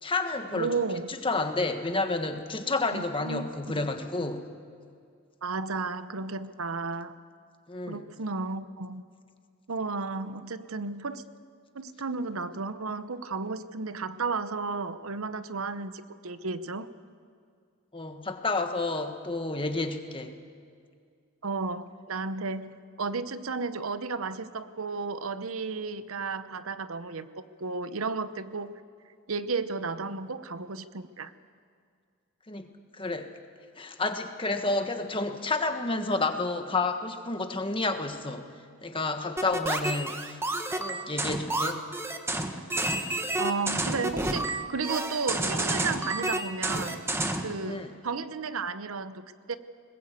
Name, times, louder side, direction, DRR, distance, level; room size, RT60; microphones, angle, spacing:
voice 1, 0.0-0.7 1.1-4.5 7.7-8.0 17.9-20.4 32.5-32.7 33.0-33.3 33.8-38.5 38.8-40.4 40.8-41.8 47.6-47.9, left 3 dB, 25° left, 6 dB, 1.4 m, -30 dB
voice 2, 0.5-1.2 2.9-3.8 5.4-7.1 7.9-9.0 9.7-11.2 11.7-16.9 21.4-27.3 27.6-28.8 29.3-31.3 43.4-47.0 47.4-49.6, right 4 dB, 80° right, 13 dB, 0.9 m, -33 dB
sound 1, 39.4-47.5, right 2 dB, 10° right, 1.2 m, -30 dB
22.0 x 20.5 x 8.3 m, 2.2 s
head